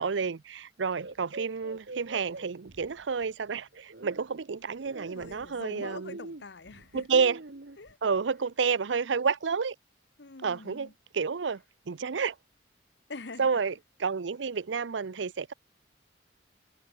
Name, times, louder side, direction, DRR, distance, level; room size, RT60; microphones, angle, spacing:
voice 1, 0.0-6.2 6.9-7.4 8.0-9.7 10.4-10.9 11.1-11.6 11.9-12.3 13.4-13.7 14.0-15.5, right 5 dB, 85° right, 0.6 m, -30 dB
sound 1, 0.9-3.2 3.7-4.3 4.8-7.9, right 2 dB, 65° right, 1.3 m, -44 dB
voice 2, 5.1-7.2 7.8-8.0 10.2-10.9 13.1-13.6, left 3 dB, 70° left, 1.1 m, -45 dB
head